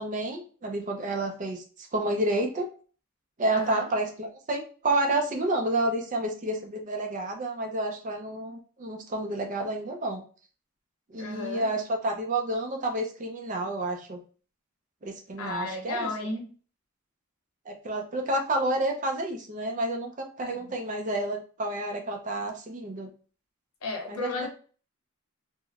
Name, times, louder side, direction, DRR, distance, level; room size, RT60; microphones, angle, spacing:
voice 1, 0.0-1.6 1.9-2.7 3.4-10.2 11.1-14.2 15.0-16.1 17.7-23.1 24.1-24.5, right 1 dB, 35° right, 0.5 m, -30 dB
voice 2, 3.5-3.9 11.2-11.7 15.4-16.4 20.4-20.6 23.8-24.5, left 2 dB, 85° left, 0.8 m, -33 dB
3.5 x 2.1 x 2.3 m
head